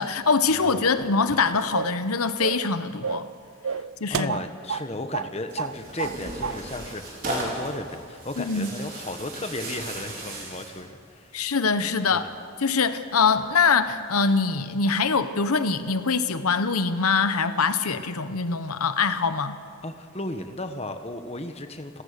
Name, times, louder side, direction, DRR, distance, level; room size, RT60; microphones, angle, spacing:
voice 1, 0.0-3.3 4.0-4.4 8.4-8.7 11.3-12.3 12.6-19.6, left 4 dB, 80° left, 11 dB, 0.9 m, -23 dB
sound 1, 1.7-2.0 2.4-2.7 3.0-3.3 3.6-4.9 5.1-5.3 5.6-6.2 6.4-6.6, right 6 dB, 65° right, 0.4 m, -30 dB
voice 2, 4.1-11.4 12.1-12.3 19.8-22.0, left 2 dB, 30° left, 7 dB, 1.2 m, -35 dB
Tearing, 5.5-10.8, right 2 dB, 40° right, 5.1 m, -36 dB
29.5 x 17.5 x 6.7 m, 2.3 s
head